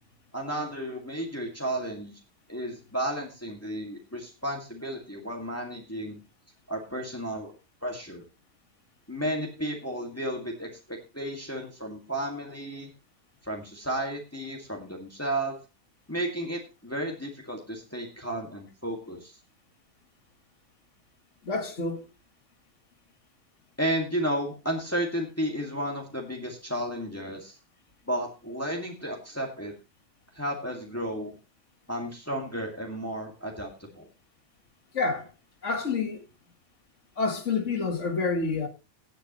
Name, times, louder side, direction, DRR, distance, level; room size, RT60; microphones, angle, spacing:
voice 1, 0.3-2.1 2.5-6.2 6.7-7.5 7.8-8.2 9.1-12.9 13.4-15.6 16.1-19.3 23.8-27.6 28.1-29.7 30.3-31.4 31.9-34.1, right 1 dB, 10° left, 2.1 m, -33 dB
voice 2, 21.5-22.1 34.9-35.3 35.6-36.2 37.2-38.7, left 4 dB, 85° left, 2.0 m, -28 dB
17.0 x 8.4 x 3.1 m
omnidirectional pair, 1.2 m